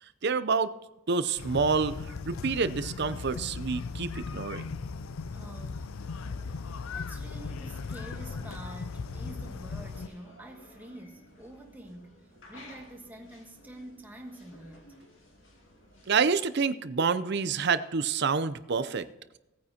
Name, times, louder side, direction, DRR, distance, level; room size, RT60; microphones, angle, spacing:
voice 1, 0.2-0.7 1.1-4.7 16.1-19.1, right 5 dB, 50° right, 14 dB, 0.5 m, -28 dB
sound 1, 1.4-10.1, left 4 dB, 85° left, 0.5 m, -38 dB
voice 2, 5.3-5.9 6.9-14.9, right 1 dB, 10° right, 1 dB, 1.4 m, -47 dB
sound 2, 6.0-16.2, left 1 dB, 60° left, 2.6 m, -55 dB
17.5 x 9.4 x 2.9 m, 0.94 s
head